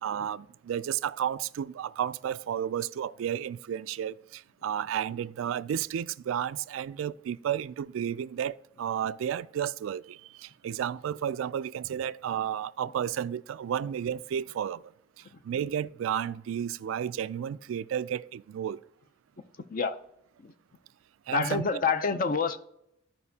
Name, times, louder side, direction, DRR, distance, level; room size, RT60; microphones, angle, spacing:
voice 1, 0.0-14.9 15.2-18.8 21.3-21.6, right 9 dB, 80° right, 0.3 m, -32 dB
voice 2, 21.3-22.6, left 5 dB, 45° left, 0.5 m, -27 dB
14.5 x 5.1 x 2.8 m
head